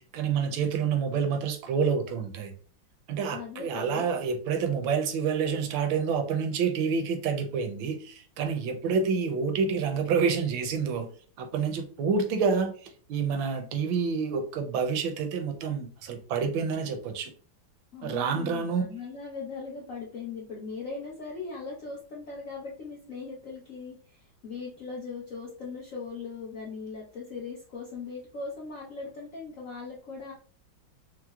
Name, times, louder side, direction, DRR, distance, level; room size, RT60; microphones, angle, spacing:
voice 1, 0.0-2.5 3.1-11.1 11.4-17.3 18.0-18.9, right 5 dB, 75° right, 1.3 m, -28 dB
voice 2, 3.3-4.1 17.9-30.3, left 4 dB, 85° left, 0.7 m, -39 dB
4.5 x 2.0 x 2.2 m
omnidirectional pair, 2.3 m